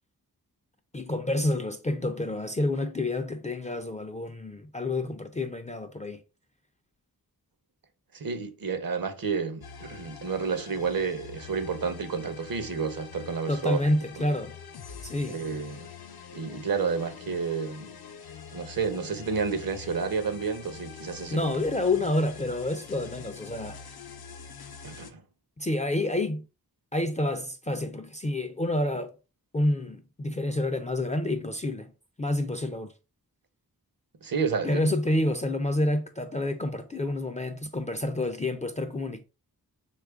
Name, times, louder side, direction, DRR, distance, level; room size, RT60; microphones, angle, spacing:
voice 1, 0.9-6.2 13.5-14.6 15.0-15.4 21.3-23.8 25.6-26.4 26.9-29.1 29.5-31.9 32.2-32.9 34.6-39.2, left 1 dB, 20° left, 0.3 m, -28 dB
voice 2, 8.1-13.9 15.3-15.9 16.3-17.9 18.5-21.5 24.8-25.2 34.2-34.9, right 5 dB, 65° right, 0.7 m, -30 dB
sound 1, 9.6-25.1, left 7 dB, 70° left, 0.6 m, -45 dB
3.1 x 2.4 x 3.4 m
wide cardioid pair, 60°, 38 cm